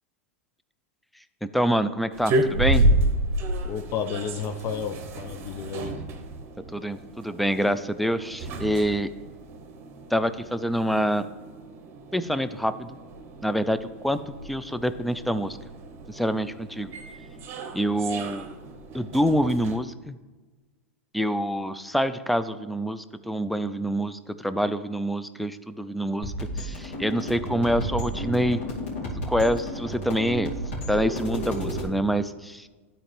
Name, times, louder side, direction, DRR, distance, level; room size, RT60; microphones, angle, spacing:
voice 1, 1.4-2.9 6.7-9.1 10.1-11.3 12.1-13.0 13.4-14.2 14.4-15.6 16.1-16.9 17.7-18.5 18.9-20.1 21.1-28.6 29.3-30.5 30.9-32.7, equal, ahead, 12 dB, 0.4 m, -26 dB
sound 1, 2.1-19.8, right 1 dB, 40° right, 1.1 m, -31 dB
voice 2, 3.6-6.0, left 7 dB, 40° left, 9 dB, 0.7 m, -32 dB
sound 2, 26.2-31.9, right 1 dB, 75° left, 2.6 m, -32 dB
12.5 x 4.3 x 3.4 m, 1.3 s
hypercardioid pair, 100°, 7 cm